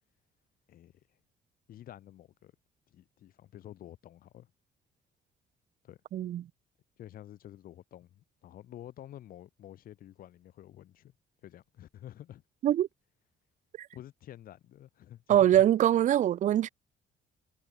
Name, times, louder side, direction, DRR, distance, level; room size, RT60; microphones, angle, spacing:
voice 1, 1.7-2.5 2.9-4.5 5.8-6.0 7.0-11.1 11.4-12.4 13.9-15.6, left 12 dB, 60° left, 6.4 m, -49 dB
voice 2, 6.1-6.5 12.6-12.9 13.8-13.9 15.3-16.7, right 11 dB, 50° right, 0.8 m, -23 dB
cardioid pair, 180°, 16 cm